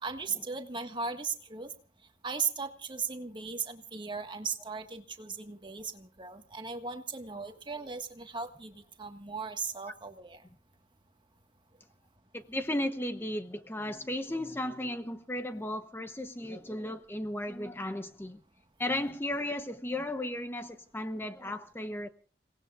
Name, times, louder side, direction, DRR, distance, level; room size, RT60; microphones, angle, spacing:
voice 1, 0.0-1.7 2.2-10.4, right 5 dB, 30° right, 1.6 m, -37 dB
voice 2, 12.3-18.4 18.8-22.1, left 1 dB, 15° left, 0.9 m, -35 dB
29.5 x 18.5 x 2.5 m
head